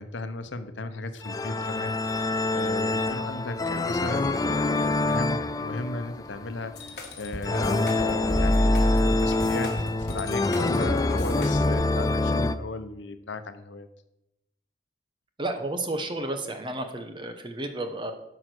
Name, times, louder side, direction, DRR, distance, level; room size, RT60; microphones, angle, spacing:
voice 1, 0.0-13.9, left 2 dB, 85° left, 10 dB, 0.8 m, -36 dB
sound 1, 1.2-12.5, left 2 dB, 20° left, 0.3 m, -26 dB
sound 2, 6.8-11.8, equal, 55° left, 1.8 m, -28 dB
voice 2, 15.4-18.1, right 2 dB, 25° right, 6 dB, 1.0 m, -32 dB
12.5 x 5.0 x 6.1 m, 0.86 s
head